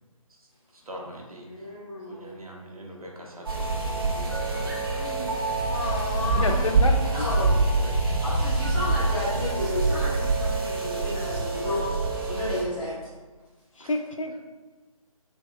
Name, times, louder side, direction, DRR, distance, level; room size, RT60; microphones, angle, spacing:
voice 1, 0.7-1.7 2.1-4.8 6.2-6.5 13.8-13.9, equal, 75° right, -1 dB, 0.8 m, -43 dB
voice 2, 1.5-2.3 5.7-7.6 8.2-11.9 12.2-12.9, left 1 dB, 5° left, -12 dB, 0.5 m, -32 dB
sound 1, 3.5-12.6, right 3 dB, 40° right, 0.6 m, -25 dB
voice 3, 5.0-5.4 6.4-8.0 13.8-14.4, left 2 dB, 60° left, 5 dB, 0.4 m, -31 dB
3.4 x 3.1 x 2.2 m, 1.3 s
figure-of-eight pair, 150°, 19 cm